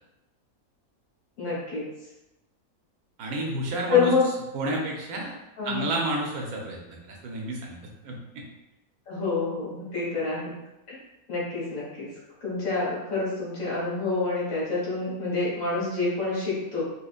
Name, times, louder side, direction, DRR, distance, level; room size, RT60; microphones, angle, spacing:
voice 1, 1.4-1.9 3.9-4.3 5.6-5.9 9.1-10.5 10.9-11.0 11.3-12.1 12.4-16.8, left 4 dB, 70° left, -7 dB, 1.9 m, -27 dB
voice 2, 3.2-4.1 4.5-5.3 5.6-8.4, right 1 dB, 90° right, 0 dB, 1.2 m, -31 dB
4.3 x 2.5 x 2.4 m, 0.94 s
omnidirectional pair, 1.5 m